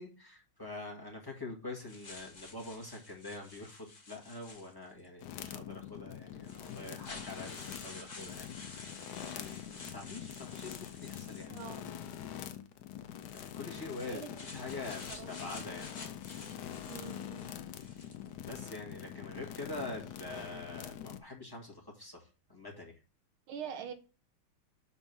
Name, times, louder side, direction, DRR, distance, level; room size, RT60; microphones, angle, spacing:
voice 1, 0.0-11.5 13.3-15.9 18.4-23.0, left 2 dB, 10° left, 1.6 m, -45 dB
sound 1, 1.9-5.1 5.9-6.0 6.4-12.2 13.2-18.3, left 3 dB, 30° left, 0.9 m, -51 dB
sound 2, 5.2-21.2, left 10 dB, 75° left, 1.0 m, -45 dB
voice 2, 11.5-11.9 14.0-14.3 14.9-15.3 16.9-17.5 23.5-23.9, right 7 dB, 75° right, 1.8 m, -44 dB
5.9 x 4.3 x 5.6 m
omnidirectional pair, 2.4 m